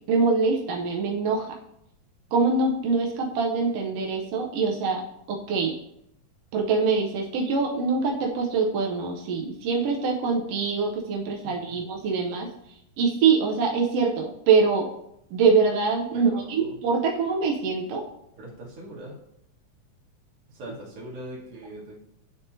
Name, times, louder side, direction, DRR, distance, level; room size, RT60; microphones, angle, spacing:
voice 1, 0.1-1.5 2.3-5.0 5.3-5.7 6.5-12.5 13.0-14.9 15.3-18.0, right 4 dB, 80° right, 0 dB, 1.4 m, -24 dB
voice 2, 16.1-16.8 18.4-19.2 20.5-22.0, right 1 dB, 55° right, -5 dB, 2.3 m, -41 dB
10.0 x 3.6 x 2.7 m, 0.78 s
omnidirectional pair, 3.4 m